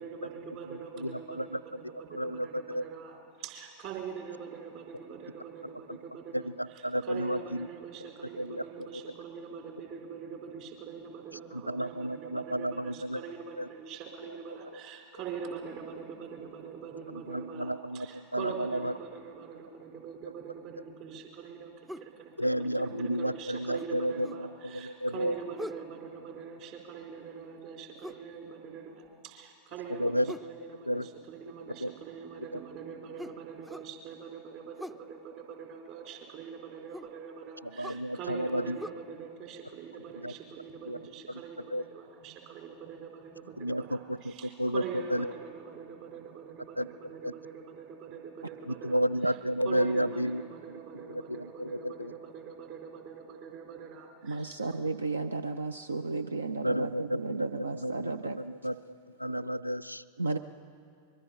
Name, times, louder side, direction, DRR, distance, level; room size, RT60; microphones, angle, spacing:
voice 1, 0.0-54.6, right 6 dB, 45° right, 1 dB, 3.9 m, -44 dB
voice 2, 0.9-1.6 1.9-2.8 6.3-7.7 8.4-8.6 11.5-13.2 13.6-13.7 17.1-18.1 18.3-18.9 22.4-24.5 24.7-25.3 30.0-30.3 30.9-31.1 31.8-31.9 37.8-38.8 40.2-40.3 40.9-41.0 41.7-41.8 43.6-44.3 44.6-44.8 45.1-45.3 46.8-46.9 47.2-47.3 48.7-50.4 51.1-52.1 56.6-58.7 59.2-60.0, equal, 90° left, 11 dB, 0.4 m, -31 dB
sound 1, 21.9-22.1 23.8-24.5 25.6-25.9 28.0-28.3 30.3-30.6 33.2-33.9 34.8-35.1 36.9-37.2 37.8-38.1 38.8-38.9, left 1 dB, 5° right, 0.4 m, -42 dB
voice 3, 54.2-58.4 60.2-60.4, right 3 dB, 75° right, 11 dB, 0.5 m, -33 dB
24.0 x 22.0 x 5.7 m, 2.3 s
figure-of-eight pair, 90°, 0 cm